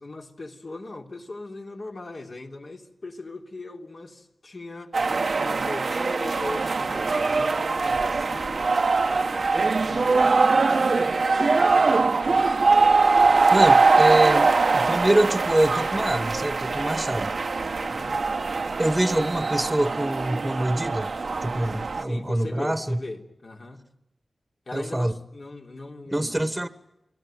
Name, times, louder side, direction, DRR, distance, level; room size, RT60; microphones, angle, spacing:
voice 1, 0.0-4.9 5.4-8.7 9.8-12.7 17.6-18.2 21.7-23.8 24.7-26.5, left 2 dB, 55° left, 3.4 m, -39 dB
sound 1, 4.9-22.0, right 4 dB, 65° right, 1.1 m, -22 dB
voice 2, 13.5-17.3 18.8-21.1 21.4-23.0 24.7-25.1 26.1-26.7, right 1 dB, 15° right, 1.5 m, -25 dB
30.0 x 20.0 x 9.1 m
cardioid pair, 55°, 0 cm